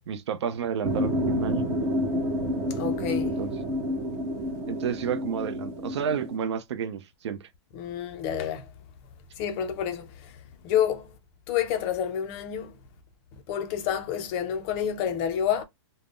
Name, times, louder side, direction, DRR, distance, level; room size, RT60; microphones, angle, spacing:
voice 1, 0.1-1.7 3.4-3.5 4.7-7.4, right 7 dB, 75° right, 0.5 m, -30 dB
sound 1, 0.8-6.4, equal, 20° right, 0.6 m, -29 dB
voice 2, 2.7-3.4 7.7-8.7 9.4-10.4 10.6-11.1 11.5-12.7 13.3-15.6, left 9 dB, 25° left, 0.4 m, -29 dB
2.4 x 2.0 x 3.5 m
hypercardioid pair, 160°, 14 cm